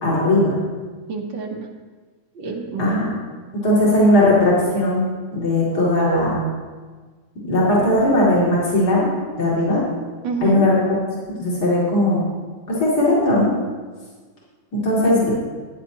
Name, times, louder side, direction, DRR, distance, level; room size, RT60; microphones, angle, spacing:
voice 1, 0.0-0.6 2.8-3.1 3.5-5.1 5.3-6.4 7.4-9.1 9.4-9.8 10.4-11.0 11.4-12.2 12.7-13.5 14.7-15.3, left 1 dB, 60° left, -7 dB, 3.3 m, -18 dB
voice 2, 1.1-1.7 2.4-3.0 10.2-10.7 15.0-15.3, right 5 dB, 85° right, 1 dB, 1.8 m, -28 dB
14.5 x 9.9 x 3.0 m, 1.4 s
omnidirectional pair, 2.0 m